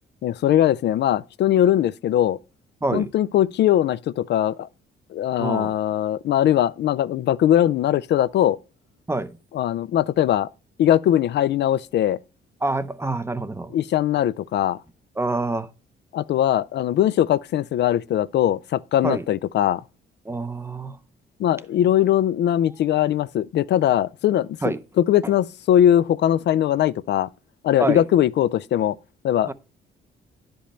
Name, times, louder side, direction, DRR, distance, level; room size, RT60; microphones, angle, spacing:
voice 1, 0.2-2.4 2.9-4.7 5.1-8.6 9.5-10.5 10.8-12.2 13.7-14.8 16.1-19.8 21.4-27.3 27.6-29.0 29.2-29.5, left 11 dB, 60° left, 0.4 m, -20 dB
voice 2, 5.4-5.7 9.1-9.3 12.6-13.7 15.2-15.7 19.0-19.2 20.3-21.0 24.6-24.8 27.8-28.0 29.5-29.6, right 2 dB, 15° right, 0.6 m, -26 dB
10.5 x 5.3 x 4.3 m
cardioid pair, 90°, 20 cm